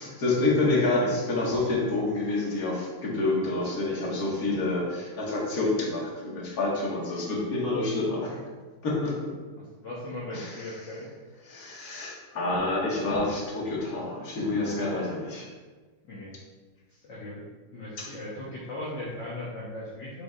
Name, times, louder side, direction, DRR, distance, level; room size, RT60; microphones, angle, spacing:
voice 1, 0.0-8.4 8.8-9.3 10.3-10.6 11.5-15.5 18.0-18.1, left 2 dB, 45° left, -4 dB, 2.0 m, -28 dB
voice 2, 9.6-11.1 16.1-16.3 17.0-17.5 17.7-20.2, left 1 dB, 60° left, -7 dB, 1.7 m, -38 dB
8.3 x 6.2 x 2.4 m, 1.3 s
omnidirectional pair, 2.3 m